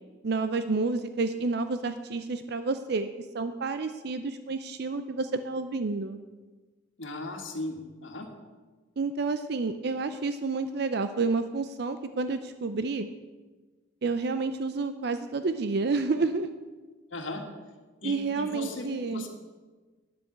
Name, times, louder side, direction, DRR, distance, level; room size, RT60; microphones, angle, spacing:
voice 1, 0.2-3.1 3.3-6.2 9.0-13.1 14.0-16.5 18.0-19.3, right 3 dB, 55° right, 10 dB, 0.5 m, -29 dB
voice 2, 7.0-8.3 17.1-17.4 18.0-19.3, left 2 dB, 85° left, 4 dB, 1.7 m, -37 dB
9.5 x 7.7 x 8.0 m, 1.3 s
head